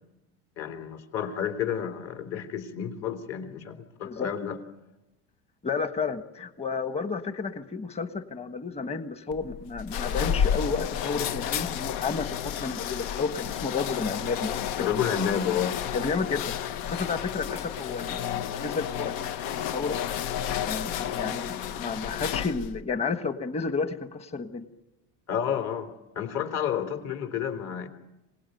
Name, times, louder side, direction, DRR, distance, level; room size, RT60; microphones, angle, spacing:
voice 1, 0.6-4.6 14.8-15.8 25.3-27.9, left 8 dB, 45° left, 7 dB, 3.4 m, -30 dB
voice 2, 5.6-14.5 14.9-15.0 15.9-20.0 20.7-24.7, left 4 dB, 20° left, 10 dB, 1.5 m, -32 dB
sound 1, 9.3-22.8, left 9 dB, 70° left, 1.4 m, -31 dB
26.5 x 19.0 x 9.3 m, 0.96 s
supercardioid pair, 145°, 34 cm